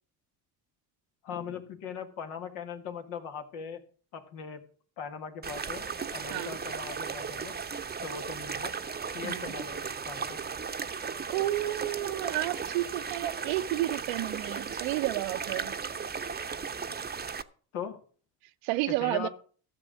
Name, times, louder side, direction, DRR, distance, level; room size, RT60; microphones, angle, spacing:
voice 1, 1.2-3.8 4.1-4.6 5.0-7.6 8.0-8.7 9.1-10.4 17.7-18.0 18.9-19.3, left 7 dB, 75° left, 1.9 m, -40 dB
sound 1, 5.4-17.4, right 5 dB, 20° right, 0.8 m, -36 dB
voice 2, 9.2-9.5 11.3-15.7 18.6-19.3, right 16 dB, 75° right, 0.8 m, -31 dB
13.5 x 6.9 x 6.3 m
hypercardioid pair, 55°, 47 cm